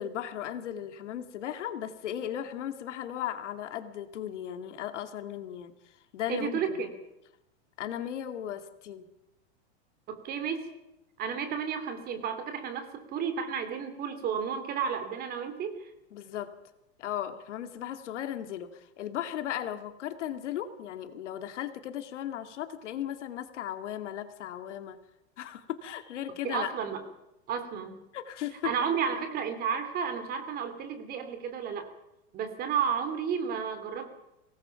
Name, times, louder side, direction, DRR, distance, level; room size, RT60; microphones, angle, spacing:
voice 1, 0.0-6.6 7.8-9.1 16.1-16.5 17.0-25.0 25.4-26.7 28.1-28.7, left 10 dB, 85° left, 8 dB, 2.5 m, -36 dB
voice 2, 6.3-6.9 10.1-10.7 11.2-15.9 26.4-27.0 27.5-28.0 28.6-31.9 32.3-34.1, right 7 dB, 25° right, 8 dB, 2.9 m, -32 dB
24.5 x 18.5 x 5.9 m, 0.90 s
supercardioid pair, 160°, 35 cm